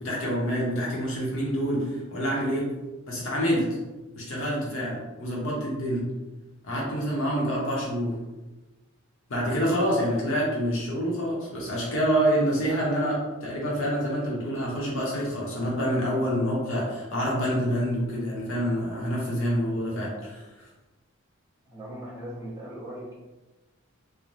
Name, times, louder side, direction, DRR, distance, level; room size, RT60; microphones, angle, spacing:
voice 1, 0.0-2.7 3.1-3.7 4.2-6.1 6.6-8.2 9.3-20.4, equal, 65° left, -4 dB, 0.8 m, -27 dB
voice 2, 21.6-23.2, equal, 20° right, -10 dB, 1.1 m, -39 dB
3.0 x 2.1 x 2.5 m, 1.1 s
head